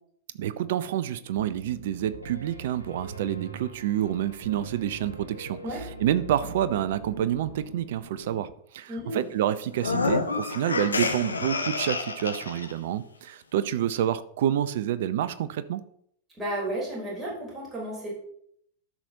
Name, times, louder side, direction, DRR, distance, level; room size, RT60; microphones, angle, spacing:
voice 1, 0.4-15.8, right 11 dB, 55° right, 15 dB, 0.5 m, -28 dB
Piano, 1.3-8.4, right 2 dB, 85° right, 0.9 m, -43 dB
voice 2, 8.9-9.3 16.4-18.1, right 1 dB, 15° right, -5 dB, 3.5 m, -33 dB
sound 1, 9.7-12.7, left 4 dB, 75° left, 0.7 m, -28 dB
13.0 x 5.7 x 2.7 m, 0.70 s
figure-of-eight pair, 90°, 0 cm